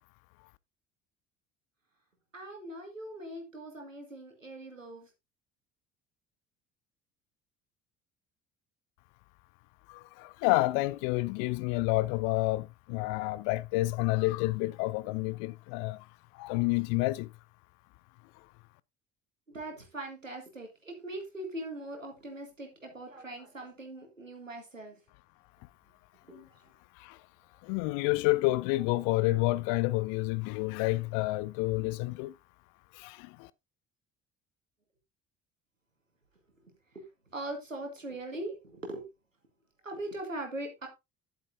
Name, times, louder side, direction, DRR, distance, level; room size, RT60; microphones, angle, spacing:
voice 1, 2.3-5.1 19.5-25.0 26.3-26.5 36.9-37.0 37.3-39.1 39.8-40.9, right 1 dB, 90° right, 2.0 m, -41 dB
voice 2, 9.9-16.0 16.3-17.3 26.3-26.5 27.0-27.2 27.6-32.3 32.9-33.5, left 20 dB, 55° left, 0.7 m, -29 dB
10.5 x 8.4 x 2.6 m
figure-of-eight pair, 60°, 37 cm